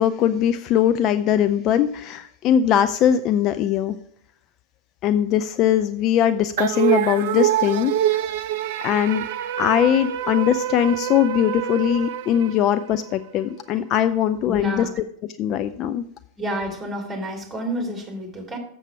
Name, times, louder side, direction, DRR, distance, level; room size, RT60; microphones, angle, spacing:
voice 1, 0.0-3.9 5.0-8.2 8.8-9.3 9.6-14.9 15.4-16.0, left 10 dB, 35° left, 11 dB, 0.4 m, -21 dB
sound 1, 6.6-13.1, right 12 dB, 50° right, 0.4 m, -25 dB
voice 2, 14.4-14.9 16.4-18.6, equal, 10° right, 2 dB, 2.4 m, -29 dB
7.3 x 6.8 x 5.7 m, 0.65 s
figure-of-eight pair, 90°, 0 cm